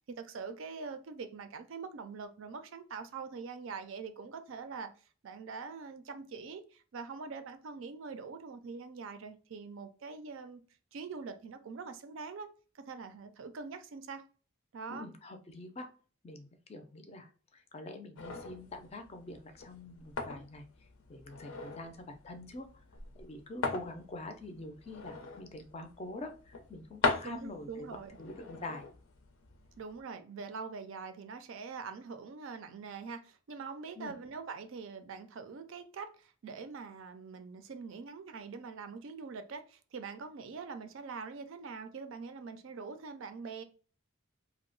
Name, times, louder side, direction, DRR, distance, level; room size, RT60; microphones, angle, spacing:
voice 1, 0.1-4.9 5.2-10.6 10.9-12.5 12.7-14.2 14.7-15.1 27.2-28.1 29.8-43.6, right 5 dB, 65° right, 0.4 m, -44 dB
voice 2, 14.9-15.9 16.2-20.7 21.1-22.7 23.2-27.9 28.2-28.9 34.0-34.1, left 2 dB, 30° left, 0.4 m, -45 dB
sound 1, 18.2-30.0, left 4 dB, 80° left, 0.6 m, -40 dB
2.8 x 2.1 x 3.8 m
head